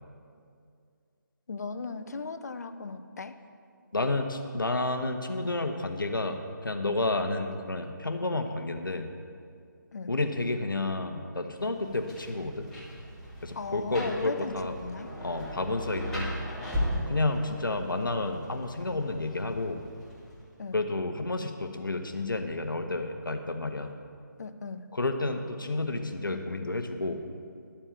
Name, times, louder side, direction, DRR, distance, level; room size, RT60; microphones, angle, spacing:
voice 1, 1.5-3.4 9.9-10.1 13.5-15.1 20.6-20.8 24.4-24.9, left 4 dB, 55° left, 9 dB, 0.6 m, -37 dB
voice 2, 3.9-9.1 10.1-12.7 13.4-14.7 15.2-16.4 17.1-19.8 20.7-24.0 24.9-27.2, left 2 dB, 80° left, 5 dB, 1.0 m, -30 dB
Rain, 11.5-20.6, equal, ahead, 1.5 m, -38 dB
11.5 x 4.4 x 7.5 m, 2.3 s
figure-of-eight pair, 155°, 11 cm